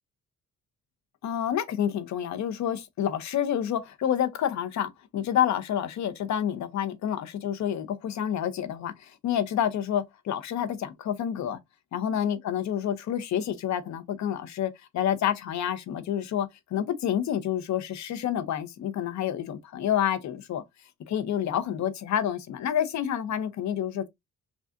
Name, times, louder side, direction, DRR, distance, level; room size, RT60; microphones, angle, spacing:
voice 1, 1.2-11.6 11.9-20.6 21.1-24.1, left 10 dB, 65° left, 0.8 m, -28 dB
6.1 x 2.4 x 2.5 m
cardioid pair, 90°, 30 cm